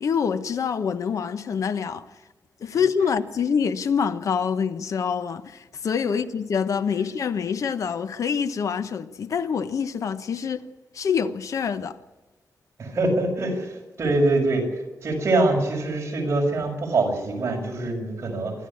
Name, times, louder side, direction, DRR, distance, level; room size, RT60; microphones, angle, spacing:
voice 1, 0.0-2.0 2.6-10.6 10.9-12.0, left 6 dB, 65° left, 1.1 m, -26 dB
voice 2, 12.8-14.7 15.0-18.5, right 2 dB, 45° right, 6.5 m, -24 dB
26.0 x 13.0 x 8.7 m
wide cardioid pair, 165°, 6 cm